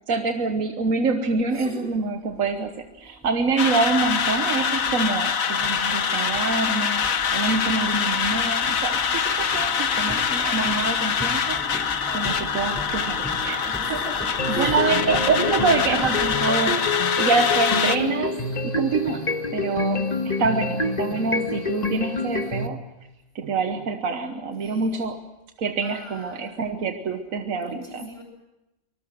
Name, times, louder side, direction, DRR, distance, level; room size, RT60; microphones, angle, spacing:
voice 1, 0.1-11.6 12.1-13.8 14.3-16.8 17.2-19.2 19.5-22.8 23.3-25.2 25.6-28.1, right 4 dB, 85° right, 7 dB, 1.5 m, -26 dB
sound 1, 1.4-1.5 2.2-16.5, equal, 5° left, 3.2 m, -40 dB
sound 2, 3.6-18.0, left 6 dB, 85° left, 1.6 m, -24 dB
voice 2, 12.0-12.4 13.8-14.8 24.6-25.1 25.8-26.5 27.5-28.2, right 1 dB, 50° right, 1 dB, 8.0 m, -40 dB
sound 3, 14.4-22.7, left 3 dB, 30° left, 1.5 m, -27 dB
24.5 x 20.0 x 7.7 m, 0.96 s
omnidirectional pair, 1.4 m